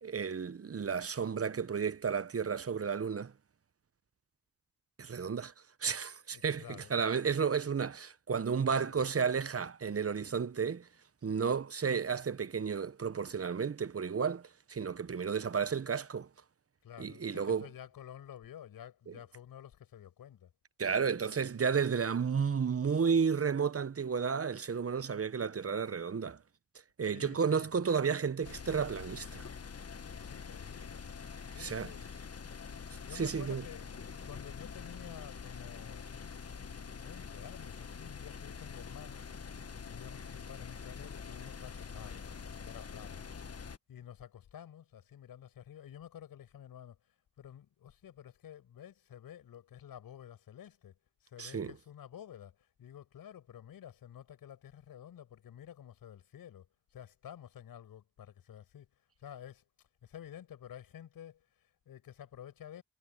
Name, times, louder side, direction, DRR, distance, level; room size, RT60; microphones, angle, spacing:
voice 1, 0.0-3.3 5.0-5.5 5.8-10.9 11.2-16.3 17.0-17.7 20.8-26.4 27.0-29.5 31.6-31.9 33.1-33.6 51.4-51.7, right 6 dB, 40° right, 1.0 m, -32 dB
voice 2, 6.3-6.9 8.6-9.0 16.8-20.5 27.1-27.7 30.0-31.1 31.5-32.1 33.0-33.9 34.2-36.3 36.7-39.3 39.7-42.2 42.6-43.2 43.9-59.6 60.0-62.8, left 10 dB, 80° left, 5.5 m, -51 dB
sound 1, 28.4-43.8, left 6 dB, 45° left, 1.5 m, -45 dB
supercardioid pair, 40°, 34 cm